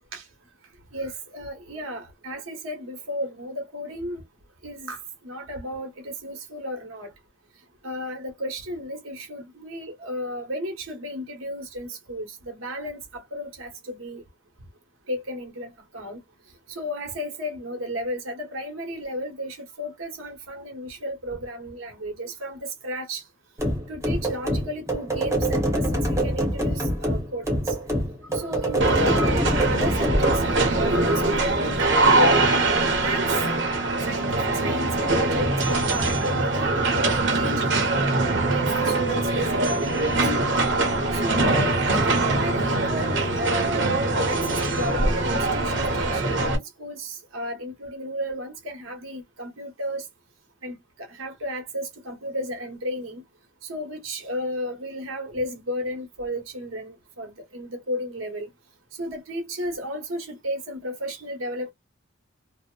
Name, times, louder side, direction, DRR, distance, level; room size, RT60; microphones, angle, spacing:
voice 1, 0.9-4.2 4.6-7.1 7.8-14.2 15.1-16.2 16.7-23.2 23.9-27.8 28.3-33.3 34.0-38.0 38.4-40.4 41.1-43.9 44.3-50.1 50.6-53.2 53.6-58.5 59.0-61.7, equal, 85° right, 1.0 m, -33 dB
sound 1, 23.6-30.4, equal, 15° right, 0.8 m, -25 dB
sound 2, 28.8-46.6, right 2 dB, 60° right, 0.8 m, -22 dB
2.7 x 2.0 x 2.2 m
head